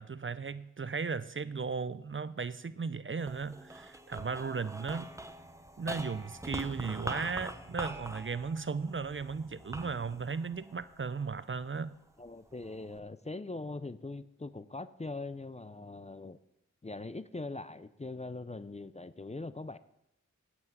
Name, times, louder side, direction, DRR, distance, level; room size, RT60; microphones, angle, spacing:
voice 1, 0.0-5.1 5.8-11.9, right 5 dB, 40° right, 0.5 m, -36 dB
sound 1, 3.2-11.7 12.2-13.0, right 1 dB, 10° right, 0.8 m, -43 dB
voice 2, 12.2-16.4 16.8-19.8, left 2 dB, 20° left, 0.5 m, -41 dB
9.2 x 8.0 x 7.9 m
wide cardioid pair, 45°, 31 cm